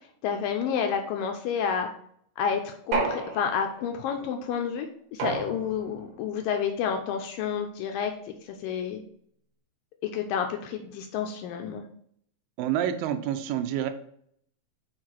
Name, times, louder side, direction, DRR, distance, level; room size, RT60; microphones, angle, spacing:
voice 1, 0.2-1.9 2.4-9.0 10.0-11.8, left 7 dB, 80° left, 5 dB, 2.1 m, -30 dB
sound 1, 2.9-3.9 5.2-6.0, right 4 dB, 60° right, 2.1 m, -31 dB
voice 2, 12.6-13.9, right 10 dB, 80° right, 9 dB, 2.1 m, -28 dB
6.7 x 4.7 x 4.5 m, 0.65 s
omnidirectional pair, 4.5 m